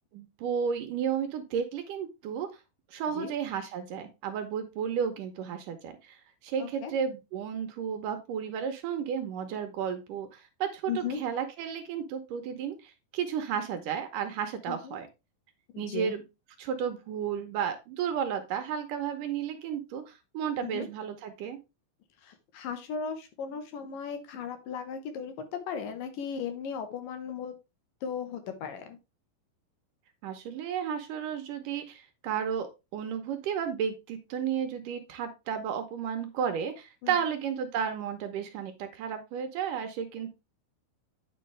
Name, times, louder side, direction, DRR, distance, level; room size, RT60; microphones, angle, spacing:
voice 1, 0.1-2.5 2.9-15.1 15.8-16.2 16.6-21.6 30.2-32.7 32.9-40.3, right 8 dB, 70° right, 7 dB, 2.3 m, -33 dB
voice 2, 6.6-6.9 10.9-11.2 14.7-15.0 15.7-16.1 20.6-20.9 22.2-27.6 28.0-29.0 37.0-37.2, left 7 dB, 75° left, 8 dB, 2.6 m, -36 dB
9.4 x 5.2 x 3.3 m, 0.25 s
omnidirectional pair, 4.3 m